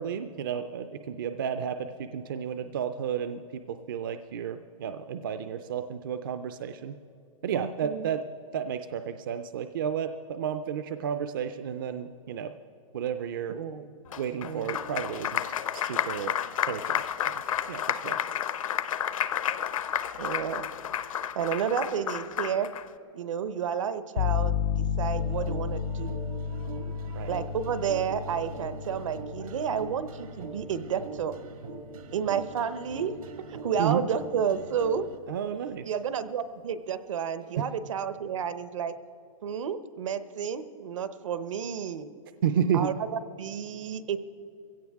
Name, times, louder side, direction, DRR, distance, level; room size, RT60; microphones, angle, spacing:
voice 1, 0.0-7.0 7.4-8.2 8.5-12.5 12.9-13.6 14.2-15.4 15.7-16.3 16.6-17.3 17.7-18.2 27.1-27.3 33.8-34.0 35.3-35.9 37.6-37.7 42.4-42.9, right 8 dB, 40° right, 9 dB, 0.4 m, -32 dB
voice 2, 7.5-8.1 13.5-13.9 14.4-14.8 20.2-20.7 21.3-22.7 23.1-26.1 27.3-31.4 32.1-33.1 33.5-35.1 35.8-38.9 39.4-42.1 42.7-44.2, right 7 dB, 65° right, 12 dB, 0.8 m, -31 dB
Applause, 14.1-22.8, left 9 dB, 75° left, 0.8 m, -31 dB
sound 1, 24.2-31.9, left 8 dB, 40° left, 0.4 m, -33 dB
sound 2, 25.1-35.2, right 3 dB, 80° right, 1.6 m, -43 dB
21.5 x 16.5 x 3.5 m, 2.6 s
hypercardioid pair, 175°, 18 cm